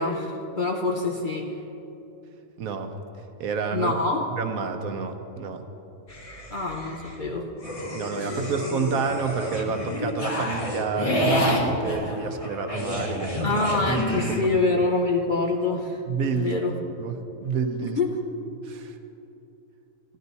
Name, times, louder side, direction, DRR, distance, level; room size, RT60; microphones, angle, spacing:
voice 1, 0.0-1.4 3.7-4.2 6.5-7.5 8.2-8.3 13.4-16.0 16.3-16.8 18.0-18.1, left 3 dB, 45° left, 0 dB, 0.7 m, -25 dB
voice 2, 2.6-2.9 3.4-3.9 4.3-5.6 7.9-13.5 16.1-16.6 17.0-17.2 17.4-18.0 18.6-19.0, right 5 dB, 70° right, 6 dB, 1.2 m, -29 dB
sound 1, 6.1-7.1 7.6-14.4, left 1 dB, 25° left, 1.2 m, -29 dB
14.5 x 11.0 x 4.1 m, 2.8 s
omnidirectional pair, 1.6 m